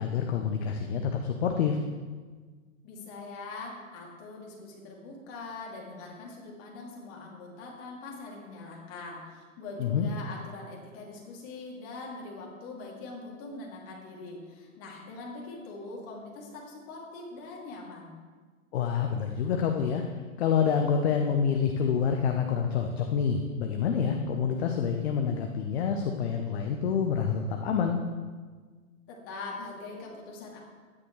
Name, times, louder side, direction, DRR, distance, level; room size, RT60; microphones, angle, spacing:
voice 1, 0.0-1.8 9.8-10.1 18.7-20.0 20.4-28.0, left 7 dB, 50° left, 4 dB, 1.0 m, -27 dB
voice 2, 2.8-18.2 29.1-30.6, left 3 dB, 30° left, -2 dB, 2.9 m, -42 dB
13.0 x 10.0 x 3.3 m, 1.5 s
hypercardioid pair, 125°, 42 cm